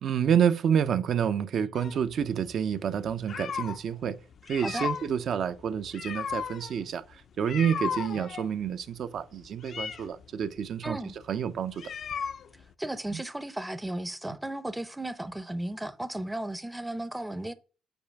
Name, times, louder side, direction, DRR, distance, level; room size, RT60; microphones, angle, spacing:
voice 1, 0.0-4.2 4.5-11.9 13.1-13.2, right 8 dB, 65° right, 0.4 m, -29 dB
sound 1, 1.7-3.9 4.3-12.7, left 7 dB, 55° left, 0.4 m, -36 dB
voice 2, 10.8-11.1 12.8-17.5, right 1 dB, 10° right, 0.5 m, -35 dB
5.3 x 4.5 x 5.7 m
cardioid pair, 90°, 0 cm